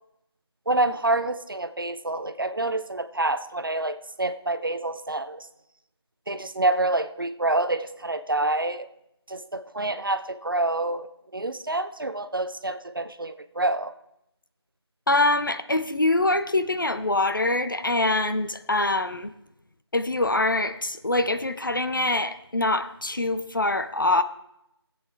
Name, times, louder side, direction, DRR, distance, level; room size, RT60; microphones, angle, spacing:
voice 1, 0.7-5.5 6.3-8.9 9.3-13.9, right 2 dB, 50° right, 11 dB, 0.6 m, -27 dB
voice 2, 15.1-19.3 19.9-24.2, left 2 dB, 50° left, 10 dB, 0.6 m, -24 dB
18.0 x 8.1 x 3.3 m, 0.82 s
figure-of-eight pair, 175°, 14 cm